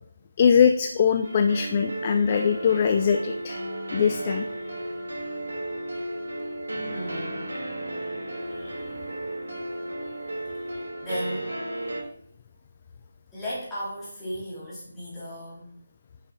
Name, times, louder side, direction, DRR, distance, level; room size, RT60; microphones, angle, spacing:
voice 1, 0.4-3.6 3.9-4.5 8.6-8.7, left 7 dB, 30° left, 7 dB, 0.3 m, -22 dB
sound 1, 1.2-12.0, right 1 dB, 80° right, 2.7 m, -34 dB
sound 2, 2.4-3.9, right 3 dB, 45° right, 1.5 m, -44 dB
voice 2, 6.9-7.6 10.6-10.7 11.0-11.6 13.3-15.7, equal, 5° left, -10 dB, 2.6 m, -36 dB
6.6 x 6.0 x 3.5 m, 0.67 s
figure-of-eight pair, 165°, 0 cm